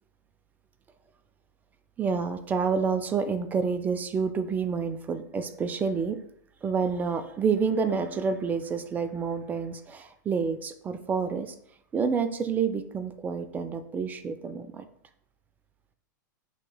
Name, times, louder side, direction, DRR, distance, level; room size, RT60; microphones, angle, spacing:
voice 1, 2.0-6.2 6.6-11.5 11.9-14.9, right 5 dB, 15° right, 0.4 m, -28 dB
6.1 x 2.9 x 2.2 m
hypercardioid pair, 100°, 10 cm